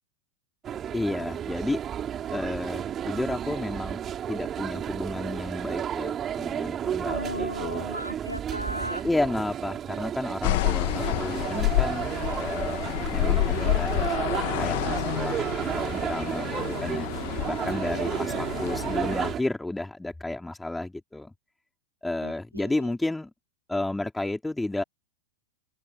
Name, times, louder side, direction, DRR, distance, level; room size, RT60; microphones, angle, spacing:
sound 1, 0.6-19.4, right 9 dB, 25° right, 6.7 m, -32 dB
voice 1, 0.9-1.8 2.3-4.0 4.3-7.9 9.0-14.1 14.5-17.1 17.5-21.3 22.0-23.3 23.7-24.8, left 2 dB, 5° left, 3.9 m, -32 dB
voice 2, 7.0-9.1 17.7-18.2 22.2-22.9, equal, 90° right, 4.9 m, -36 dB
sound 2, 10.4-19.3, left 20 dB, 50° left, 1.7 m, -29 dB
open air
figure-of-eight pair, 90°, 0 cm